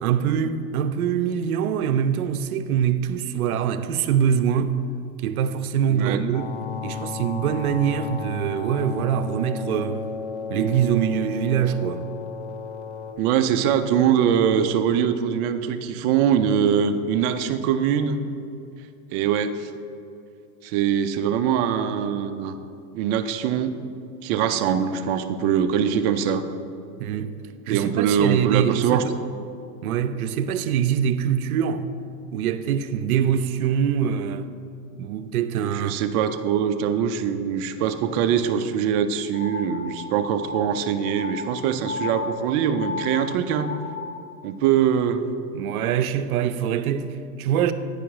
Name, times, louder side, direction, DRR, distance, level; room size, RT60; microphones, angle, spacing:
voice 1, 0.0-4.8 5.2-6.5 6.8-10.0 10.5-12.1 27.0-27.4 27.7-29.1 29.8-31.8 32.3-34.5 35.0-35.9 45.5-47.7, right 8 dB, 85° right, 0.6 m, -24 dB
voice 2, 5.9-6.2 13.2-18.2 19.1-19.7 20.6-22.5 22.9-23.7 24.2-26.4 27.7-29.0 35.6-43.7 44.4-45.2, right 8 dB, 40° right, 0.6 m, -23 dB
sound 1, 6.3-13.1, left 6 dB, 50° left, 0.9 m, -34 dB
sound 2, 39.3-44.2, left 4 dB, 30° left, 2.0 m, -34 dB
9.5 x 5.0 x 4.7 m
hypercardioid pair, 130°, 43 cm